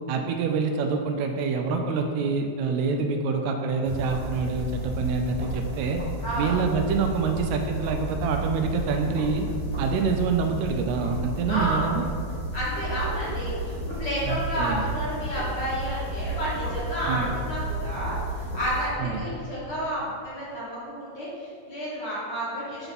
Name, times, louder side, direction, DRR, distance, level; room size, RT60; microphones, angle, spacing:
voice 1, 0.1-6.0 6.4-9.5 9.8-12.1 14.3-14.9 17.1-17.3 19.0-19.2, right 5 dB, 80° right, 4 dB, 1.8 m, -26 dB
sound 1, 3.8-19.3, right 1 dB, 35° right, 0.4 m, -32 dB
voice 2, 6.2-6.6 9.8-10.0 11.5-12.0 12.5-22.9, equal, 45° left, -9 dB, 2.0 m, -31 dB
6.9 x 4.4 x 4.0 m, 2.2 s
omnidirectional pair, 3.3 m